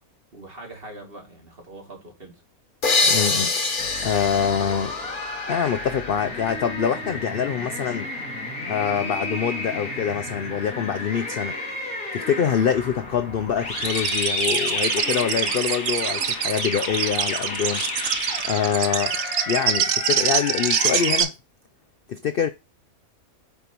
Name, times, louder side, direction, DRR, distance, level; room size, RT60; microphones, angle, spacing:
voice 1, 0.3-2.4, right 2 dB, 40° right, 2.8 m, -42 dB
sound 1, 2.8-6.4, left 3 dB, 40° left, 1.3 m, -25 dB
voice 2, 3.0-3.5 4.0-4.9 5.5-8.1 8.7-11.6 12.1-17.8 18.4-19.2 19.5-21.3 22.1-22.5, left 8 dB, 60° left, 0.6 m, -25 dB
sound 2, 3.8-21.2, left 2 dB, 80° left, 3.0 m, -31 dB
sound 3, 13.8-21.3, right 9 dB, 70° right, 1.2 m, -24 dB
9.3 x 7.5 x 3.0 m
omnidirectional pair, 1.5 m